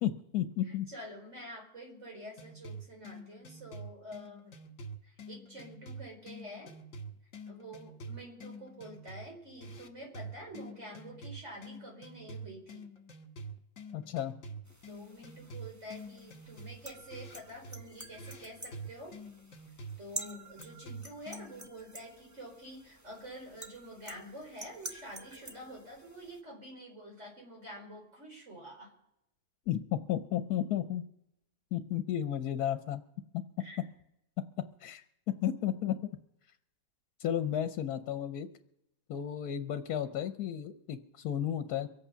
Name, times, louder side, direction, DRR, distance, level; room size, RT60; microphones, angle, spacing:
voice 1, 0.0-0.9 13.9-14.3 29.7-31.1 31.7-33.0 33.3-33.6 34.4-34.5 34.8-35.0 35.4-35.9 37.2-38.5 39.1-41.9, left 10 dB, 75° left, 9 dB, 1.2 m, -33 dB
voice 2, 0.6-4.5 5.0-6.7 7.5-12.9 14.9-19.1 20.0-28.9 33.6-33.9, equal, 50° right, 0 dB, 4.8 m, -48 dB
sound 1, 2.4-21.7, right 2 dB, 55° left, 1.7 m, -47 dB
sound 2, 14.7-26.4, right 1 dB, 15° right, 1.0 m, -49 dB
23.5 x 8.6 x 5.6 m, 0.84 s
omnidirectional pair, 1.7 m